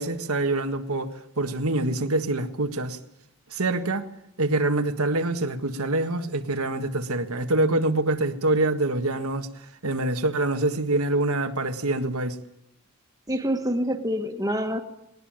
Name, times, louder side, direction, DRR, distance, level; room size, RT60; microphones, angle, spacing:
voice 1, 0.0-3.0 3.5-4.1 4.4-9.5 9.8-12.4, right 2 dB, 80° right, 1.7 m, -25 dB
voice 2, 13.3-14.8, equal, 15° right, 1.8 m, -26 dB
20.0 x 19.5 x 9.0 m
head